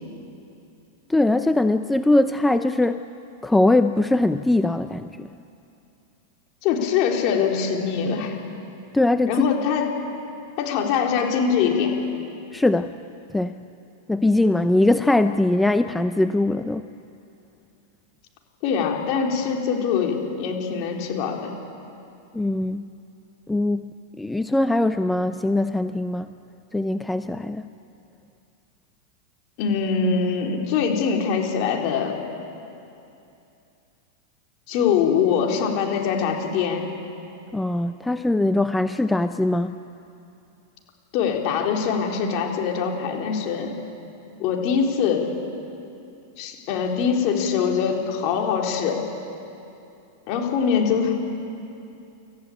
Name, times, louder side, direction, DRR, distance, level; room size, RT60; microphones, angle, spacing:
voice 1, 1.1-3.0 3.4-5.3 8.9-9.3 12.5-12.9 13.3-13.5 14.1-16.9 22.3-22.9 23.5-23.8 24.2-26.3 26.7-27.7 37.5-39.8, left 2 dB, 5° left, 9 dB, 0.6 m, -21 dB
voice 2, 6.6-8.4 9.3-10.0 10.6-11.9 18.6-21.5 29.6-32.2 34.7-36.9 41.1-43.8 44.4-45.3 46.4-49.0 50.3-51.2, left 6 dB, 50° left, 1 dB, 3.9 m, -23 dB
28.0 x 14.5 x 8.7 m, 2.7 s
hypercardioid pair, 115°, 0 cm